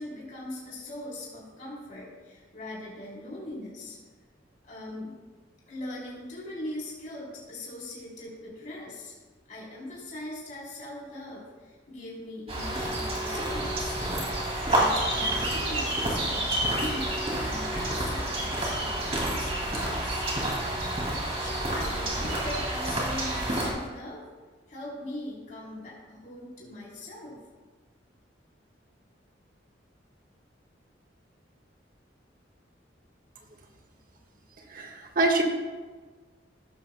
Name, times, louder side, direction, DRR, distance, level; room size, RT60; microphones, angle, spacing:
voice 1, 0.0-4.0 4.6-5.2 5.7-9.1 9.5-14.0 14.6-20.2 21.3-24.2 24.7-27.4, left 1 dB, 45° left, -6 dB, 3.4 m, -40 dB
sound 1, 12.5-23.7, right 1 dB, 35° right, 2.4 m, -29 dB
voice 2, 34.7-35.4, right 2 dB, 50° right, 2 dB, 1.4 m, -25 dB
15.0 x 11.5 x 2.2 m, 1.4 s
head